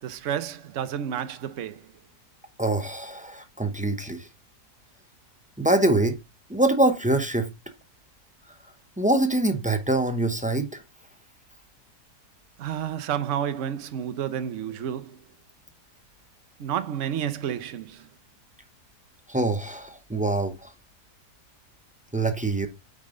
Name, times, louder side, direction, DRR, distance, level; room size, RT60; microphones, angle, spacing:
voice 1, 0.0-1.8 12.6-15.2 16.6-18.1, right 9 dB, 55° right, 1.0 m, -30 dB
voice 2, 2.6-4.3 5.6-6.2 6.5-7.5 9.0-10.8 19.3-20.7 22.1-22.7, right 2 dB, 10° right, 0.5 m, -24 dB
8.7 x 5.3 x 3.8 m
omnidirectional pair, 1.7 m